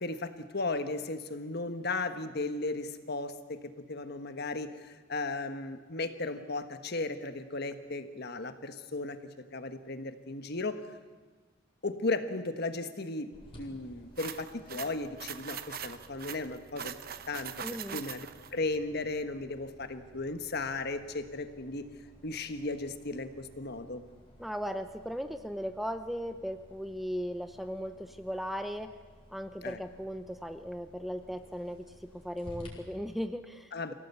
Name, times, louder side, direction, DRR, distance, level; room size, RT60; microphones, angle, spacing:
voice 1, 0.0-3.6 3.9-9.2 9.5-10.8 11.8-17.0 17.3-17.5 17.9-18.3 18.5-21.9 22.2-24.0 29.6-29.8 33.7-33.9, left 3 dB, 50° left, 9 dB, 1.3 m, -35 dB
sound 1, 13.3-32.7, equal, 25° left, 4.9 m, -56 dB
sound 2, 14.2-18.5, right 8 dB, 45° right, 0.9 m, -42 dB
voice 2, 17.6-18.0 24.4-28.9 29.3-33.9, equal, ahead, 8 dB, 0.6 m, -37 dB
25.5 x 16.5 x 8.3 m, 1.4 s
head